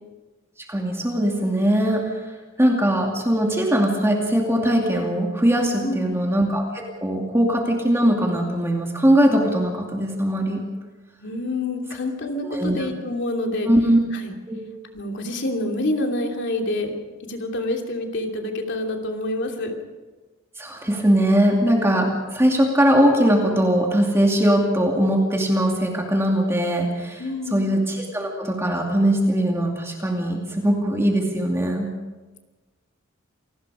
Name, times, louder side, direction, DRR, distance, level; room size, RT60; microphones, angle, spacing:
voice 1, 0.7-2.2 2.6-10.6 12.4-12.9 13.7-14.0 14.5-14.6 20.6-27.2 27.5-31.9, equal, 15° right, 0 dB, 2.5 m, -20 dB
voice 2, 5.8-6.2 11.2-13.7 14.1-14.3 14.9-16.9 17.3-19.8 27.2-27.6, left 1 dB, 60° left, 3 dB, 2.9 m, -27 dB
28.0 x 19.0 x 5.0 m, 1.2 s
head